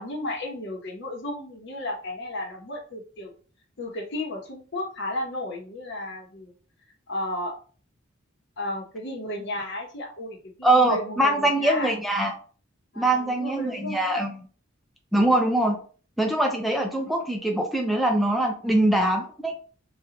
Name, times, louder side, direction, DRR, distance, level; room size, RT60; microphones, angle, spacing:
voice 1, 0.0-3.3 3.8-6.5 7.1-7.6 8.6-11.9 12.9-14.2, left 1 dB, 60° left, 1 dB, 1.0 m, -33 dB
voice 2, 10.6-12.3 13.0-14.3 15.1-15.8 16.2-19.5, right 1 dB, ahead, 1 dB, 0.4 m, -23 dB
4.9 x 2.4 x 2.8 m, 0.41 s
head